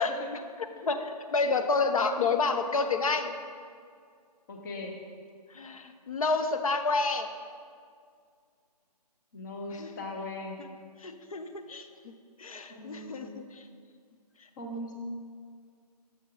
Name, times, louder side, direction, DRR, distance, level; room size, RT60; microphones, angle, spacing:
voice 1, 0.0-3.3 5.5-7.3 9.7-9.9 10.6-10.7 11.0-12.1 12.4-13.3 13.5-13.6, left 4 dB, 55° left, 7 dB, 0.6 m, -29 dB
voice 2, 2.0-2.3 4.5-4.9 9.3-10.6 12.7-13.3 14.6-14.9, left 2 dB, 30° left, 1 dB, 0.8 m, -40 dB
7.0 x 6.3 x 3.8 m, 2.1 s
figure-of-eight pair, 145°, 21 cm